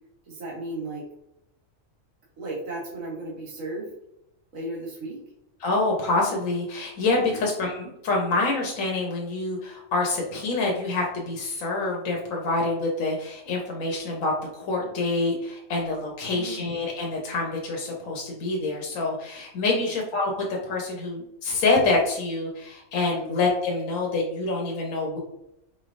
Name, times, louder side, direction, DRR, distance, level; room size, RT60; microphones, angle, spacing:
voice 1, 0.2-1.0 2.4-3.9 4.5-5.2 7.2-7.4 16.2-16.8 19.8-19.9 23.1-23.3, right 2 dB, 80° right, -5 dB, 1.4 m, -35 dB
voice 2, 5.6-20.3 20.6-25.2, left 3 dB, 85° left, -1 dB, 1.1 m, -26 dB
4.4 x 3.1 x 2.5 m, 0.83 s
omnidirectional pair, 1.3 m